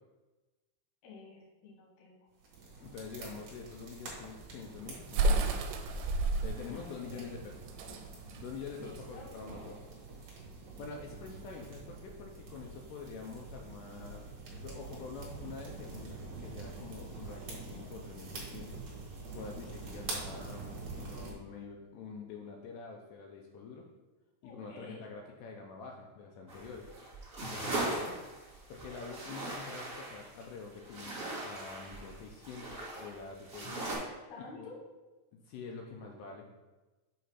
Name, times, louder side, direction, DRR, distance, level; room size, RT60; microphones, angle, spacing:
voice 1, 1.0-2.3 6.7-7.3 8.8-9.3 24.4-25.0 34.3-34.8, left 3 dB, 65° left, -2 dB, 1.8 m, -50 dB
sound 1, 2.4-21.3, right 3 dB, 55° right, 2.8 m, -46 dB
voice 2, 2.8-5.7 6.4-8.0 8.3-9.8 10.8-14.2 14.6-18.8 19.3-23.9 24.4-26.9 27.4-28.1 28.7-33.9 34.5-34.7 35.3-36.5, left 5 dB, 90° left, 0 dB, 2.4 m, -46 dB
sound 2, 4.1-9.7, right 2 dB, 85° right, 3.1 m, -32 dB
sound 3, 26.5-33.9, right 2 dB, 35° right, 0.9 m, -40 dB
8.3 x 3.1 x 5.7 m, 1.2 s
omnidirectional pair, 5.5 m